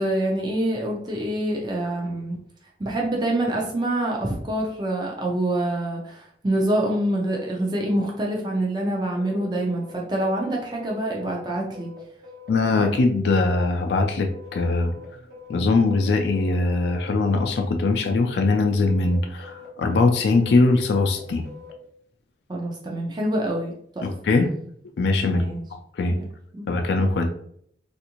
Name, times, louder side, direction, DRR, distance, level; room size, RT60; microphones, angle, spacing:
voice 1, 0.0-2.4 2.8-11.9 22.5-24.1 25.2-25.6 26.1-26.3 26.5-26.7, right 1 dB, 25° right, -2 dB, 0.5 m, -26 dB
sound 1, 9.1-21.7, left 5 dB, 55° right, 0.9 m, -44 dB
voice 2, 12.5-14.9 15.5-21.5 24.0-24.5 25.0-25.5 25.9-26.2 26.7-27.4, left 3 dB, 75° left, 4 dB, 0.4 m, -21 dB
3.4 x 2.5 x 2.9 m, 0.66 s
head